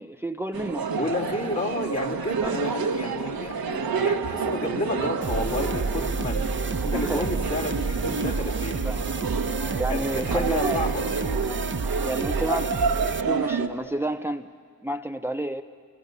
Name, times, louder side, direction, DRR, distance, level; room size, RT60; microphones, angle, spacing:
voice 1, 0.0-0.9 2.4-2.5 6.9-7.3 8.8-9.1 9.8-10.8 12.0-14.5 14.8-15.6, right 1 dB, 5° right, 9 dB, 0.7 m, -30 dB
sound 1, 0.5-13.7, right 5 dB, 85° right, 1.4 m, -29 dB
voice 2, 0.9-8.9 9.9-11.0, left 2 dB, 45° left, -1 dB, 3.5 m, -31 dB
sound 2, 5.2-13.2, right 4 dB, 35° right, 0.9 m, -30 dB
29.5 x 25.5 x 6.9 m, 2.1 s
cardioid pair, 45°, 35 cm